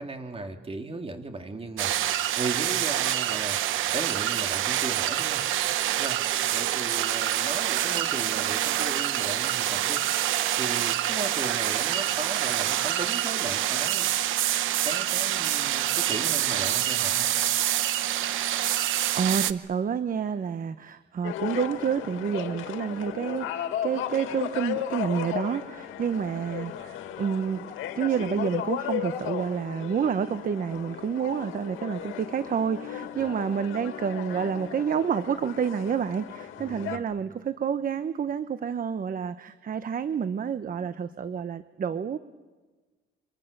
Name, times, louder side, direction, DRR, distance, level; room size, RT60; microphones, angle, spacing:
voice 1, 0.0-1.9 2.4-5.4 6.0-6.2 6.5-10.0 10.6-14.3 14.8-17.3 33.2-33.5 36.6-37.0, right 3 dB, 30° right, 5 dB, 2.8 m, -36 dB
sound 1, 1.8-19.5, right 13 dB, 85° right, 0.9 m, -26 dB
voice 2, 19.1-27.6 28.0-42.2, right 7 dB, 45° right, 12 dB, 0.9 m, -29 dB
sound 2, 21.2-37.0, left 10 dB, 90° left, 1.9 m, -35 dB
28.5 x 24.5 x 6.7 m, 1.3 s
cardioid pair, 90°, 20 cm